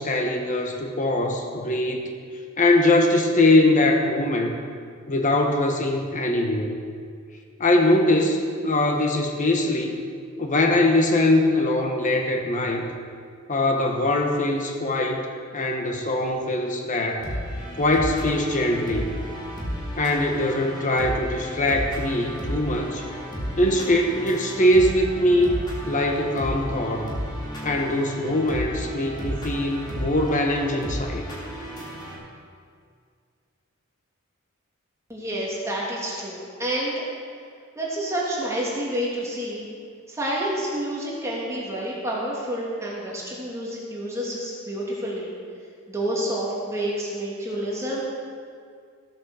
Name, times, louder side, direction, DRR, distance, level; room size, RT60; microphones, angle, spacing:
voice 1, 0.0-2.1 2.6-4.5 5.1-6.7 7.6-9.9 10.4-12.8 13.5-15.3 15.5-17.3 17.8-19.1 20.0-23.1 23.6-25.6 25.9-27.1 27.6-31.2, left 1 dB, 35° left, 2 dB, 1.3 m, -22 dB
sound 1, 17.2-32.2, equal, 20° left, 2.6 m, -33 dB
voice 2, 35.1-36.9 37.8-39.7 40.1-45.3 45.9-48.0, right 1 dB, 15° right, -5 dB, 2.7 m, -29 dB
15.0 x 8.5 x 6.5 m, 2.2 s
head